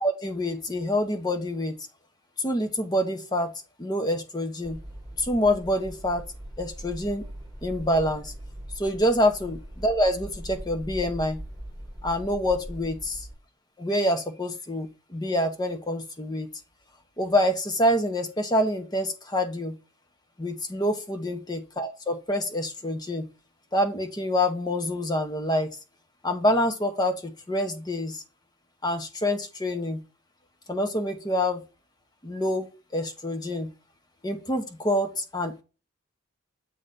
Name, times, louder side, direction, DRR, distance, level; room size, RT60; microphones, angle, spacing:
voice 1, 0.0-1.7 2.4-3.5 3.8-4.8 5.2-6.3 6.6-7.2 7.6-8.3 8.8-11.4 12.0-13.2 13.8-16.5 17.2-19.8 20.4-23.3 23.7-25.7 26.2-28.2 28.8-30.0 30.7-31.6 32.2-32.7 32.9-33.7 34.2-35.6, left 1 dB, 20° left, 6 dB, 0.9 m, -26 dB
sound 1, 4.6-13.3, right 1 dB, 10° right, 2.2 m, -41 dB
7.8 x 3.9 x 4.0 m, 0.31 s
head